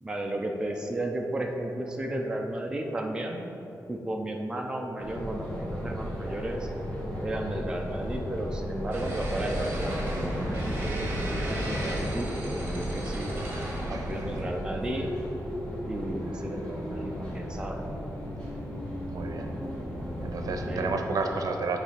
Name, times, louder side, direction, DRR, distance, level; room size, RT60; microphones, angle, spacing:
voice 1, 0.0-3.4 3.9-6.7 7.2-13.3 13.8-15.1 15.8-17.8 20.7-20.9, right 1 dB, 10° right, 1 dB, 0.5 m, -33 dB
sound 1, 5.0-20.9, equal, 15° left, 1.5 m, -35 dB
sound 2, 8.9-14.4, right 1 dB, 30° right, 1.3 m, -35 dB
voice 2, 19.1-19.5 20.2-21.8, right 3 dB, 65° right, 4 dB, 0.7 m, -31 dB
9.1 x 3.3 x 5.6 m, 3.0 s
wide cardioid pair, 175°, 7 cm